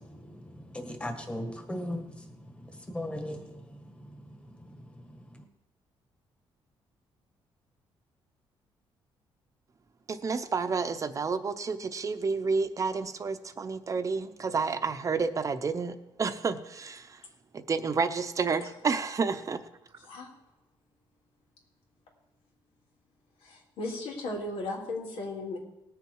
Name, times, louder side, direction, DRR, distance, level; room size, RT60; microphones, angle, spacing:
voice 1, 0.5-2.1 2.9-3.6, left 1 dB, 10° left, 4 dB, 1.7 m, -36 dB
voice 2, 10.1-17.2 17.5-19.6, right 4 dB, 35° right, 10 dB, 0.8 m, -30 dB
voice 3, 20.0-20.3 23.4-25.6, left 2 dB, 85° left, -1 dB, 3.5 m, -36 dB
19.0 x 7.0 x 4.8 m, 0.93 s
cardioid pair, 120°, 10 cm